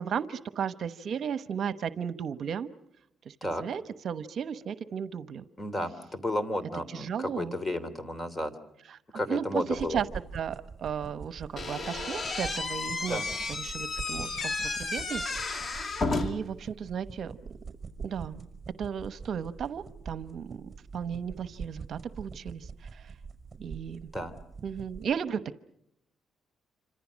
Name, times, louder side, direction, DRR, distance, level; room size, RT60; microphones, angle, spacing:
voice 1, 0.0-2.7 3.3-5.4 6.9-7.5 8.9-9.0 9.3-10.1 10.3-13.2 13.5-17.3 18.0-18.5 18.8-23.1 23.6-24.1 24.6-25.6, right 7 dB, 60° right, 13 dB, 1.0 m, -35 dB
voice 2, 5.6-8.5 9.1-10.0 13.1-13.2 24.1-24.3, left 1 dB, 20° left, 14 dB, 3.1 m, -32 dB
sound 1, 9.7-25.1, right 5 dB, 25° right, 5.7 m, -45 dB
Slam / Squeak, 11.6-16.5, left 3 dB, 40° left, 2.4 m, -32 dB
27.5 x 26.0 x 6.3 m, 0.76 s
cardioid pair, 90°, 0 cm